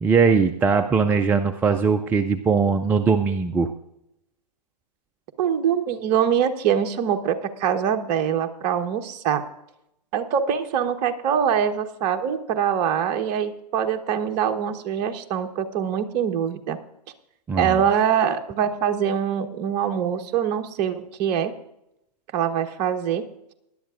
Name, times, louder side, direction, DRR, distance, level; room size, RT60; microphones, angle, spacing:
voice 1, 0.0-3.7 17.5-17.8, right 5 dB, 10° right, 7 dB, 0.3 m, -20 dB
voice 2, 5.4-9.4 10.1-16.8 17.6-21.5 22.3-23.3, right 8 dB, 35° right, 6 dB, 1.0 m, -24 dB
19.5 x 11.0 x 2.5 m, 0.83 s
hypercardioid pair, 125°, 21 cm